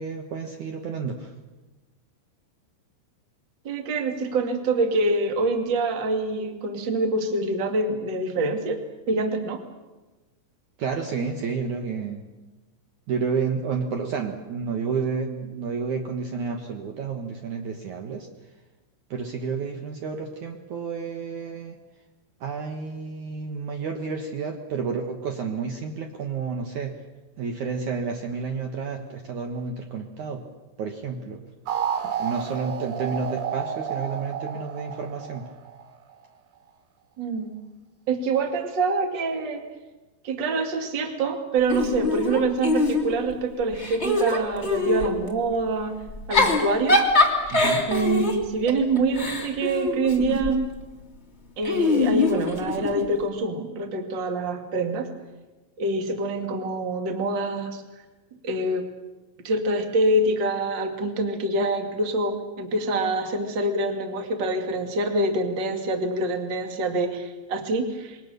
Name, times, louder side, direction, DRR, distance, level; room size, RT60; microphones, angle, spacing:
voice 1, 0.0-1.3 10.8-12.2 13.1-18.3 19.1-21.7 22.4-26.9 27.4-30.4 30.8-31.4 32.0-35.5 47.5-47.8, right 5 dB, 85° right, 3 dB, 1.6 m, -30 dB
voice 2, 3.6-8.8 9.1-9.6 37.2-37.5 38.1-39.6 40.2-46.0 46.3-47.0 47.5-50.7 51.6-55.1 55.8-57.8 58.4-58.8 59.4-68.2, right 2 dB, 45° right, 5 dB, 1.4 m, -25 dB
sound 1, 31.7-36.1, right 7 dB, 70° right, 4.4 m, -31 dB
Giggle / Chuckle chortle, 41.7-43.3 43.7-45.1 46.1-50.6 51.6-53.0, left 2 dB, 20° left, 2.2 m, -23 dB
27.5 x 23.0 x 6.7 m, 1.2 s
omnidirectional pair, 6.0 m